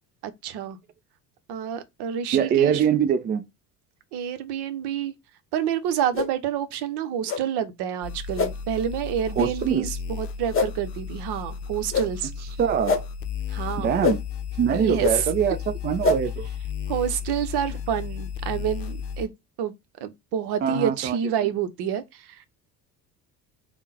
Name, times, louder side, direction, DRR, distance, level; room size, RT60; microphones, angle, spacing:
voice 1, 0.2-0.8 1.5-2.8 4.1-5.1 5.5-12.3 13.5-13.9 14.7-15.3 16.9-19.3 19.6-19.8 20.0-22.4, right 9 dB, 55° right, 0.8 m, -28 dB
voice 2, 2.3-3.4 9.4-9.9 12.6-13.0 13.8-14.2 14.6-15.6 15.8-16.5 20.6-21.2, right 8 dB, 25° right, 0.3 m, -23 dB
sound 1, 6.1-6.3 7.3-7.4 8.4-8.5 9.4-9.5 10.5-10.7 11.9-12.1 12.9-13.0 14.0-14.2 15.0-15.1 16.0-16.2, left 4 dB, 25° left, 1.0 m, -23 dB
sound 2, 8.0-19.3, left 7 dB, 80° left, 0.7 m, -34 dB
3.6 x 2.2 x 4.1 m
hypercardioid pair, 60°, 49 cm